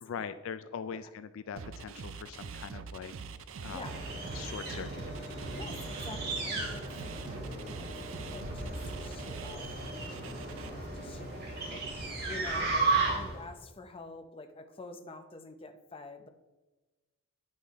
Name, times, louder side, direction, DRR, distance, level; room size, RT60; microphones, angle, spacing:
voice 1, 0.0-3.1 3.6-3.8 4.3-5.1 12.6-12.7, left 7 dB, 70° left, 12 dB, 0.4 m, -41 dB
sound 1, 1.6-10.7, right 5 dB, 75° right, 0.5 m, -44 dB
sound 2, 3.6-13.5, right 3 dB, 50° right, 2.2 m, -35 dB
voice 2, 3.7-4.1 5.5-11.4 11.7-16.3, left 2 dB, 25° left, 7 dB, 0.6 m, -48 dB
9.5 x 5.4 x 4.1 m, 1.2 s
head